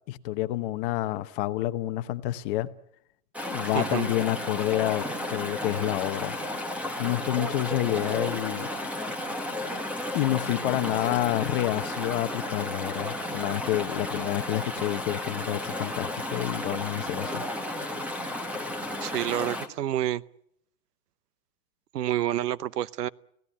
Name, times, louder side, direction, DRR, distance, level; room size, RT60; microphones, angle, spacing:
voice 1, 0.1-2.7 3.5-6.4 7.0-8.7 10.1-17.4, left 15 dB, 35° left, 1.0 m, -28 dB
Chatter / Stream, 3.3-19.7, left 1 dB, 5° right, 1.5 m, -33 dB
voice 2, 3.7-4.1 19.0-20.2 21.9-23.1, right 12 dB, 80° right, 0.9 m, -28 dB
24.5 x 16.5 x 10.0 m
hypercardioid pair, 155°, 47 cm